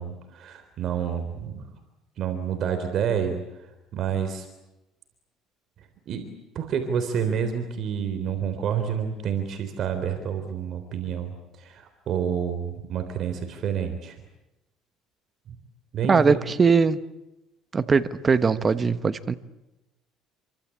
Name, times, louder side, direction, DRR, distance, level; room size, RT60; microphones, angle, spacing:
voice 1, 0.0-1.7 2.2-4.5 5.8-14.2 15.9-16.4, right 7 dB, 50° right, 3.7 m, -29 dB
voice 2, 16.1-17.0 17.7-19.3, right 5 dB, 25° right, 1.2 m, -20 dB
28.5 x 24.5 x 8.6 m
cardioid pair, 135°, 0 cm